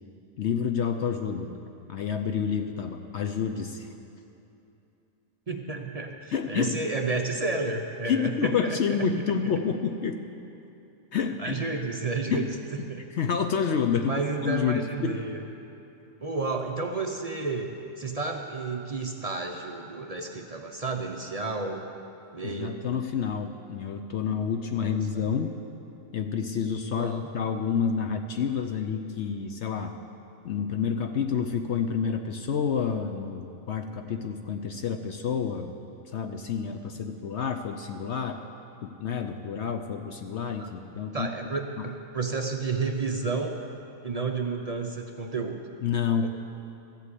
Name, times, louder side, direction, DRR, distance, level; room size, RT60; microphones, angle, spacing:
voice 1, 0.4-1.5 1.9-3.9 6.3-6.8 8.1-10.2 11.1-11.6 12.3-12.5 12.8-15.2 22.4-25.6 26.1-30.0 30.4-35.8 36.1-38.4 38.8-41.3 41.8-41.9 45.8-46.3, left 6 dB, 60° left, 6 dB, 0.8 m, -29 dB
voice 2, 5.5-9.0 11.4-12.6 12.9-13.0 14.0-15.4 16.2-21.8 22.3-22.8 24.8-25.3 26.9-27.2 40.6-40.7 41.1-43.6 44.0-45.6 46.2-46.3, right 3 dB, 45° right, 3 dB, 0.5 m, -31 dB
14.5 x 8.3 x 8.2 m, 2.8 s
omnidirectional pair, 1.6 m